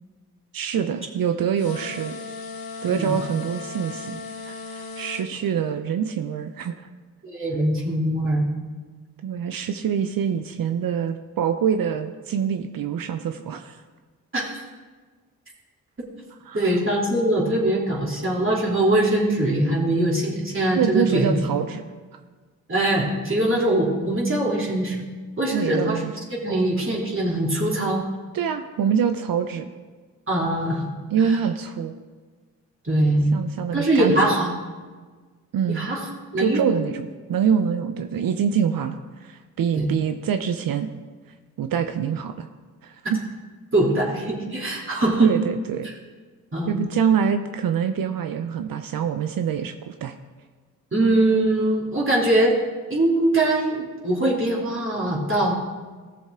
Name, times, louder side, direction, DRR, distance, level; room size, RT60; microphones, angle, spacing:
voice 1, 0.5-2.1 2.8-6.7 9.2-13.8 16.4-16.6 20.7-21.8 25.5-26.1 26.5-26.7 28.3-29.7 31.1-31.9 33.3-34.4 35.5-35.9 36.4-40.9 41.6-42.5 42.8-43.2 45.2-45.9 46.7-50.1, right 7 dB, 65° right, 8 dB, 0.7 m, -25 dB
sound 1, 1.6-5.3, left 4 dB, 65° left, 1.5 m, -36 dB
voice 2, 7.2-8.5 14.3-14.5 16.5-21.4 22.7-25.0 25.4-26.0 26.4-28.0 30.3-30.9 31.3-31.4 32.8-33.4 33.7-34.5 35.7-36.1 36.3-36.7 39.7-39.9 43.7-45.3 46.5-46.9 50.9-52.6 52.9-55.5, right 1 dB, 35° right, -4 dB, 3.1 m, -22 dB
15.0 x 7.0 x 3.7 m, 1.4 s
supercardioid pair, 50°, 37 cm